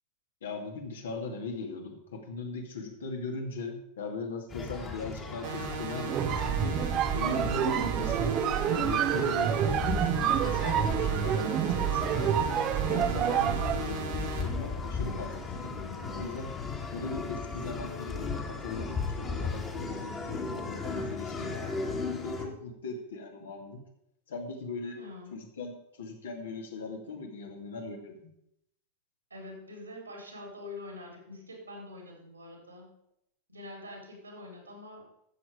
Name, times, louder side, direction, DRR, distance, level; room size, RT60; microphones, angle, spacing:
voice 1, 0.4-6.8 7.1-8.3 8.6-12.5 12.9-16.5 16.9-21.6 22.2-23.8 24.3-25.0 25.3-28.2, left 3 dB, 65° left, 2 dB, 2.3 m, -39 dB
sound 1, 4.5-22.5, left 4 dB, 20° left, 1.9 m, -37 dB
sound 2, 5.4-14.4, right 6 dB, 55° right, 2.3 m, -37 dB
sound 3, 6.1-13.9, right 9 dB, 35° right, 0.9 m, -28 dB
voice 2, 24.9-25.3 29.3-32.9 33.5-35.1, left 2 dB, 80° right, 0 dB, 4.1 m, -45 dB
13.5 x 7.7 x 5.1 m, 0.77 s
figure-of-eight pair, 90°, 0 cm